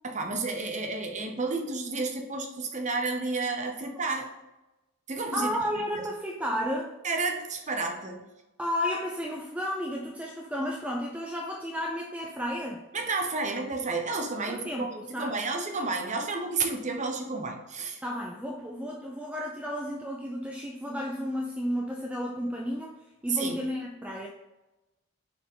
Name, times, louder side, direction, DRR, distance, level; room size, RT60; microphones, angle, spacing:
voice 1, 0.0-4.3 5.1-6.1 7.0-8.2 12.9-18.0 23.3-23.6, right 3 dB, 35° right, 2 dB, 0.9 m, -31 dB
voice 2, 5.3-7.0 8.6-12.8 14.5-15.4 18.0-23.0 23.2-24.3, equal, 5° right, -1 dB, 0.5 m, -32 dB
6.6 x 4.4 x 3.7 m, 1.0 s
head